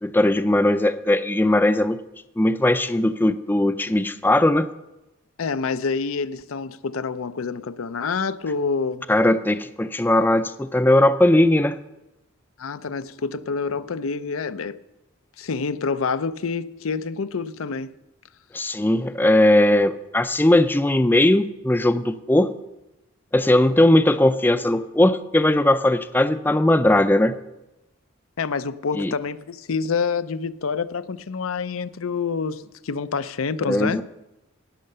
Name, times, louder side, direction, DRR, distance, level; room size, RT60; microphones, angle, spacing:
voice 1, 0.0-2.0 2.4-4.7 9.1-11.8 18.5-22.5 23.3-27.4 29.0-29.1 33.7-34.0, left 1 dB, 10° left, 0.4 m, -19 dB
voice 2, 5.4-9.1 12.6-14.8 15.4-17.9 28.4-34.0, left 5 dB, 90° left, 0.6 m, -27 dB
18.0 x 6.6 x 6.7 m
head